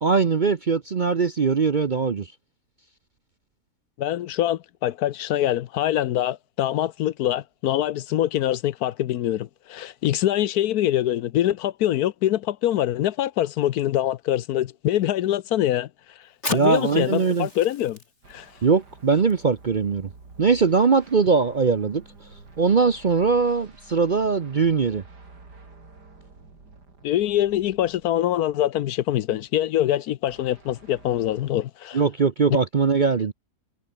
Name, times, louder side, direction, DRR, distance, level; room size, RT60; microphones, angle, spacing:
voice 1, 0.0-2.3 16.5-17.5 18.6-20.1 20.4-22.0 22.6-25.0 31.9-33.3, right 5 dB, 40° right, 0.7 m, -21 dB
voice 2, 4.0-15.9 16.5-18.0 18.3-18.5 27.0-32.0, left 12 dB, 75° left, 1.1 m, -24 dB
Fire, 16.3-23.5, left 2 dB, 40° left, 5.9 m, -42 dB
sound 1, 18.2-28.5 30.3-31.5, right 3 dB, 80° right, 4.7 m, -49 dB
omnidirectional pair, 1.7 m